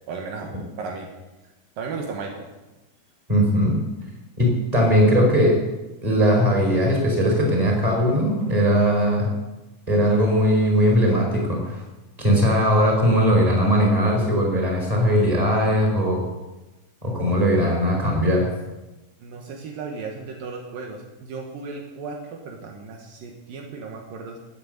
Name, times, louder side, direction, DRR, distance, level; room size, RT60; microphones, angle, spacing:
voice 1, 0.1-1.1 1.8-2.5 19.2-24.4, right 4 dB, 70° right, 2 dB, 3.1 m, -35 dB
voice 2, 3.3-3.8 4.4-5.6 6.0-9.3 9.9-11.8 12.2-16.3 17.0-18.5, equal, 10° right, 0 dB, 4.3 m, -19 dB
18.0 x 8.3 x 7.9 m, 1.1 s
omnidirectional pair, 4.2 m